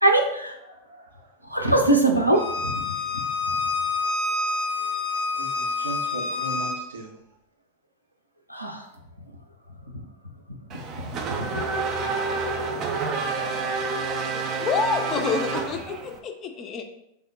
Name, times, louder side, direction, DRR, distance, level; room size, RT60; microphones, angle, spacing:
voice 1, 0.0-0.5 1.5-2.7 8.5-8.8 11.4-11.5, right 2 dB, 90° left, 3 dB, 0.4 m, -21 dB
voice 2, 0.7-1.3 5.4-7.1, right 1 dB, 70° right, 0 dB, 0.7 m, -38 dB
Bowed string instrument, 2.3-6.8, left 3 dB, 90° right, 1.2 m, -27 dB
Race car auto racing / Accelerating revving vroom, 10.7-16.2, right 4 dB, 35° right, 0.4 m, -29 dB
voice 3, 14.6-16.8, left 4 dB, 30° left, 5 dB, 0.4 m, -27 dB
3.4 x 2.1 x 3.9 m, 0.82 s
figure-of-eight pair, 90°, 0 cm